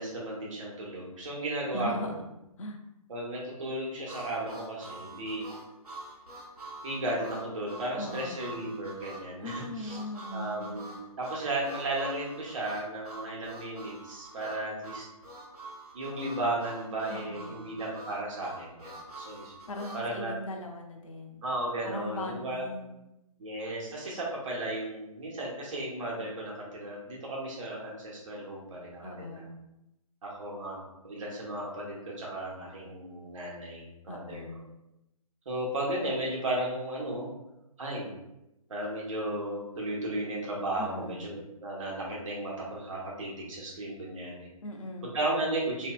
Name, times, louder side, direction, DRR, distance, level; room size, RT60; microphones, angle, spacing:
voice 1, 0.0-2.1 3.1-5.4 6.8-10.0 10.3-15.1 15.9-19.5 19.9-20.4 21.4-22.6 23.4-29.4 30.2-34.4 35.5-37.3 37.8-38.1 38.7-44.5 45.0-45.9, right 1 dB, 60° right, -4 dB, 1.1 m, -35 dB
voice 2, 1.7-2.1 2.6-2.8 8.0-8.5 9.4-10.7 17.1-17.6 19.7-21.5 21.8-23.0 29.0-29.6 34.1-34.7 40.8-41.3 44.6-45.2, left 1 dB, 60° left, 2 dB, 0.6 m, -39 dB
Harmonica, 4.1-20.1, right 2 dB, 90° right, 0.9 m, -46 dB
3.1 x 2.6 x 2.2 m, 0.89 s
figure-of-eight pair, 145°, 19 cm